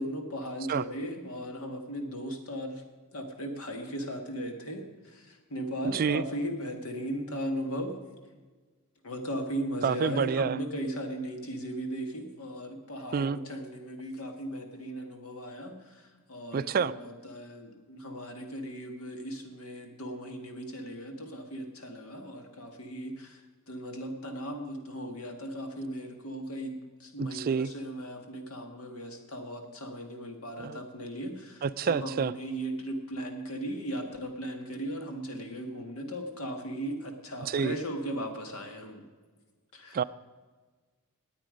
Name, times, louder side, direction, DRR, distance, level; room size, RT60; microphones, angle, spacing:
voice 1, 0.0-2.8 3.1-8.0 9.0-39.0 39.7-40.0, equal, 70° left, 4 dB, 2.0 m, -37 dB
voice 2, 5.9-6.2 9.8-10.6 13.1-13.4 16.5-16.9 27.2-27.7 30.6-30.8 31.6-32.3 37.4-37.7 39.9-40.0, right 6 dB, 45° right, 15 dB, 0.3 m, -28 dB
19.5 x 8.6 x 5.2 m, 1.4 s
head